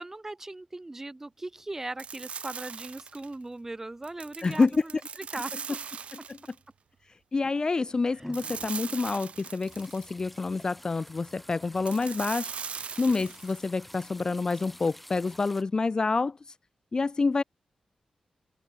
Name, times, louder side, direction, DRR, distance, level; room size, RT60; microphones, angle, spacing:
voice 1, 0.0-5.6 8.1-8.3, right 2 dB, 20° right, 2.0 m, -39 dB
sound 1, 2.0-3.3 4.0-6.6 8.3-10.0 11.8-13.6, right 6 dB, 70° right, 3.8 m, -40 dB
voice 2, 4.4-4.8 6.3-6.4 7.3-12.5 13.0-16.4 16.9-17.4, left 3 dB, 35° left, 0.8 m, -27 dB
sound 2, 7.9-15.6, equal, 5° left, 6.8 m, -48 dB
wide cardioid pair, 100°, 2 cm